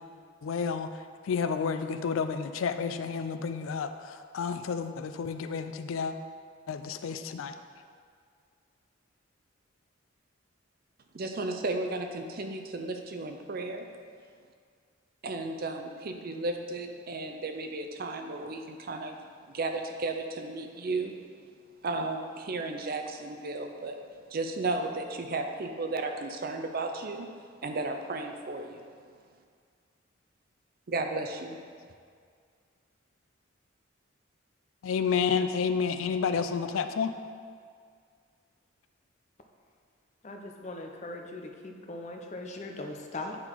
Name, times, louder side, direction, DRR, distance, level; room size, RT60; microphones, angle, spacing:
voice 1, 0.4-0.9 1.3-6.1 6.7-7.5 34.8-37.1, left 6 dB, 80° left, 9 dB, 0.4 m, -30 dB
voice 2, 11.1-13.8 15.2-19.1 19.5-21.1 21.8-24.0 24.3-27.3 27.6-28.8 30.9-31.6, right 3 dB, 45° right, 5 dB, 0.5 m, -34 dB
voice 3, 40.2-43.4, left 2 dB, 35° left, 3 dB, 0.6 m, -40 dB
8.7 x 4.0 x 4.5 m, 2.1 s
head